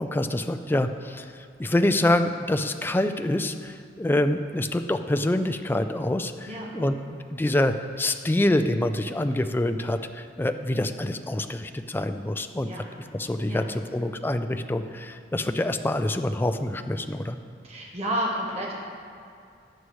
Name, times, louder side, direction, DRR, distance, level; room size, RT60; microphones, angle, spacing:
voice 1, 0.0-6.9 7.3-12.7 13.1-17.4, left 1 dB, 10° left, 8 dB, 0.3 m, -26 dB
voice 2, 17.6-18.8, equal, 35° right, -3 dB, 1.2 m, -30 dB
14.5 x 9.5 x 3.1 m, 2.3 s
head